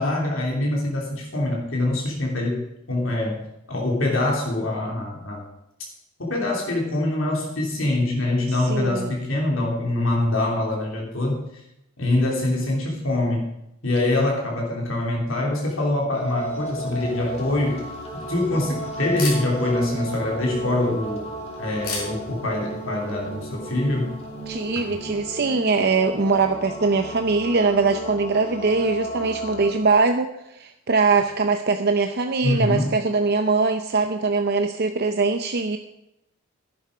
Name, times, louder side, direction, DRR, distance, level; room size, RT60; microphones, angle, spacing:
voice 1, 0.0-5.4 6.2-11.5 12.0-13.5 13.8-21.3 21.6-24.2 32.4-32.9, left 2 dB, 70° left, -1 dB, 3.0 m, -24 dB
voice 2, 8.5-9.1 24.5-35.8, right 4 dB, 50° right, 7 dB, 0.7 m, -22 dB
sound 1, 16.1-29.7, right 2 dB, 30° left, 3.1 m, -34 dB
Camera, 16.8-25.1, left 4 dB, 85° left, 5.2 m, -40 dB
12.0 x 10.5 x 5.0 m, 0.84 s
head